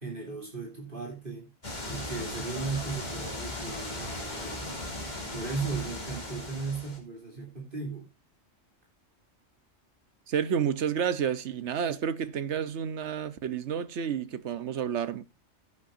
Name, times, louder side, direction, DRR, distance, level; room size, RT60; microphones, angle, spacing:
voice 1, 0.0-1.5 1.9-4.7 5.3-8.1, right 4 dB, 45° right, 3.3 m, -36 dB
sound 1, 1.6-7.0, left 1 dB, 35° left, 2.7 m, -37 dB
voice 2, 10.3-15.2, right 8 dB, 65° right, 1.1 m, -30 dB
15.0 x 8.6 x 2.6 m
omnidirectional pair, 1.3 m